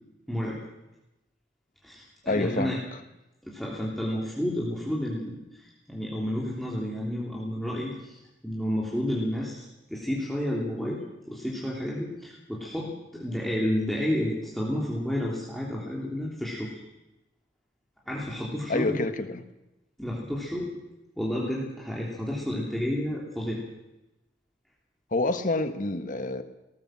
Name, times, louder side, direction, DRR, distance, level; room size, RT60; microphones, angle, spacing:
voice 1, 0.3-0.6 1.8-2.8 3.4-16.7 18.1-19.0 20.0-20.7 21.2-23.6, equal, ahead, -5 dB, 3.2 m, -31 dB
voice 2, 2.2-2.8 18.7-19.4 25.1-26.4, left 2 dB, 45° left, 9 dB, 1.6 m, -27 dB
19.0 x 18.5 x 7.6 m, 0.97 s
head